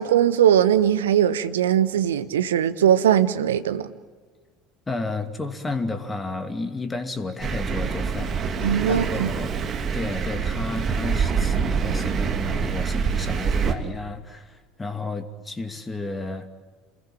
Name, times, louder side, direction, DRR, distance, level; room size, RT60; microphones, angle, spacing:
voice 1, 0.0-3.9 8.6-9.3, right 10 dB, 70° right, 1.2 m, -20 dB
voice 2, 4.9-9.5 9.9-16.5, left 3 dB, 15° left, 2.6 m, -32 dB
Thunder, 7.4-13.7, right 6 dB, 35° right, 2.7 m, -25 dB
29.0 x 21.0 x 9.0 m
figure-of-eight pair, 70°, 0 cm